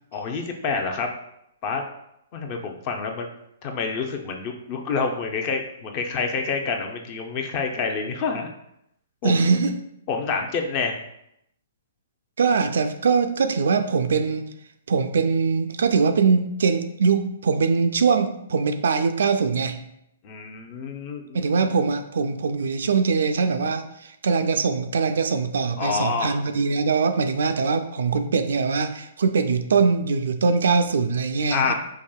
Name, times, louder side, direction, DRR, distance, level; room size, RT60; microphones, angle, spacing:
voice 1, 0.1-1.1 1.6-1.8 2.3-3.3 3.6-8.5 9.2-9.4 10.1-11.0 20.2-21.4 25.8-26.4 31.5-31.7, left 5 dB, 40° left, 4 dB, 0.6 m, -27 dB
voice 2, 9.2-9.8 12.4-14.4 14.9-19.8 21.3-31.7, right 5 dB, 70° right, 8 dB, 0.3 m, -22 dB
4.7 x 2.6 x 2.3 m, 0.78 s
hypercardioid pair, 125°, 0 cm